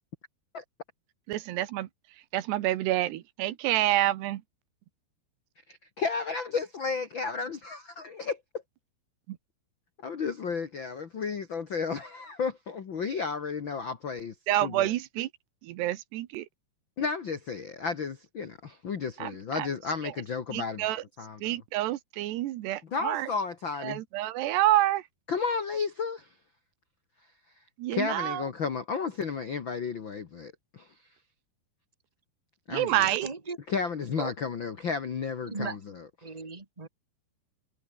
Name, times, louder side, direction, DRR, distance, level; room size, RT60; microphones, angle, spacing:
voice 1, 1.3-1.9 2.3-4.4 9.3-9.4 14.5-15.3 15.6-16.5 19.2-19.3 19.6-19.7 20.5-21.0 21.4-23.3 23.8-25.0 27.8-28.4 32.7-33.3, right 15 dB, 85° right, 3.3 m, -28 dB
voice 2, 5.7-8.4 10.0-14.3 14.6-14.9 17.0-21.5 22.8-24.0 25.3-26.3 27.9-30.9 32.7-33.1 33.7-36.3, left 5 dB, 60° left, 1.2 m, -33 dB
voice 3, 33.0-33.6 34.2-34.3 35.4-35.8 36.2-36.9, right 4 dB, 15° right, 1.7 m, -37 dB
omnidirectional pair, 4.8 m